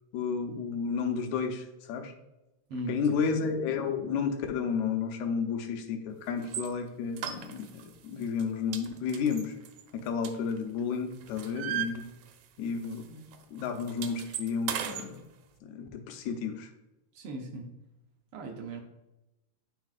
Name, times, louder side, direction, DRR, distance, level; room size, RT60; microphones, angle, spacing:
voice 1, 0.1-2.1 2.9-9.5 9.9-12.0 12.6-15.2 15.7-16.7, left 6 dB, 80° left, 6 dB, 2.1 m, -32 dB
sound 1, 6.4-6.7 7.2-7.9 8.2-8.4 8.7-10.8 11.1-12.6 12.8-13.0 13.3-15.1, right 10 dB, 90° right, 2.1 m, -37 dB
voice 2, 17.1-17.7 18.3-18.8, right 2 dB, 70° right, 2 dB, 1.4 m, -37 dB
9.4 x 5.1 x 2.4 m, 0.95 s
omnidirectional pair, 3.4 m